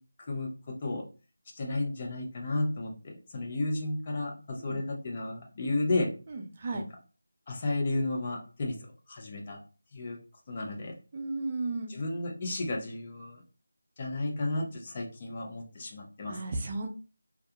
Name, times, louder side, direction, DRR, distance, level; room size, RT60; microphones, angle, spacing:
voice 1, 0.3-1.1 1.5-6.1 6.7-6.8 7.5-9.6 9.9-10.2 10.5-11.0 11.9-13.4 14.0-16.6, left 2 dB, 30° left, 0 dB, 0.6 m, -33 dB
voice 2, 6.3-6.9 11.1-11.9 16.3-16.9, right 3 dB, 30° right, 3 dB, 0.3 m, -34 dB
2.2 x 2.1 x 2.7 m, 0.33 s
figure-of-eight pair, 165°, 0 cm